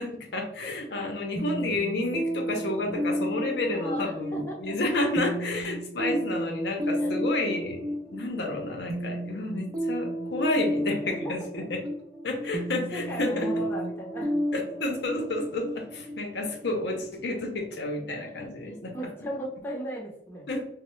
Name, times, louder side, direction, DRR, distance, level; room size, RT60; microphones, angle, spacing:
voice 1, 0.0-11.8 12.2-13.6 14.5-19.0 20.5-20.6, left 2 dB, 70° left, 2 dB, 0.6 m, -30 dB
sound 1, 1.4-16.9, equal, 20° right, 0.4 m, -32 dB
voice 2, 3.7-4.6 7.0-7.2 11.0-11.2 11.6-11.7 12.9-14.3 18.3-20.5, equal, 15° left, -3 dB, 0.7 m, -37 dB
3.1 x 2.0 x 3.1 m, 0.70 s
head